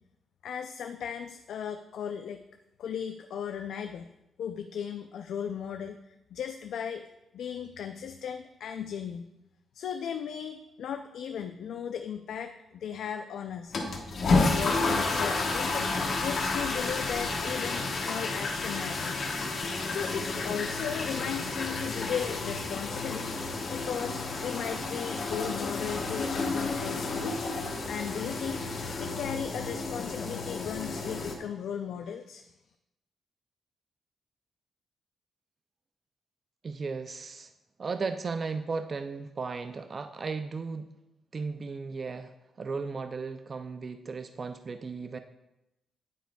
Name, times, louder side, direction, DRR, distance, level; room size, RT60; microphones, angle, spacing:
voice 1, 0.4-2.4 2.8-4.1 4.4-7.0 7.3-9.3 9.7-13.8 14.3-15.9 16.2-19.3 19.9-23.3 23.7-27.4 27.9-28.7 29.0-32.5, left 8 dB, 70° left, 7 dB, 0.4 m, -36 dB
sound 1, 13.7-31.4, left 3 dB, 40° left, 1.0 m, -31 dB
voice 2, 36.6-37.5 37.8-40.9 41.3-42.3 42.6-45.2, right 4 dB, 30° right, 8 dB, 0.3 m, -35 dB
9.2 x 9.2 x 2.3 m, 0.91 s
wide cardioid pair, 180°, 0 cm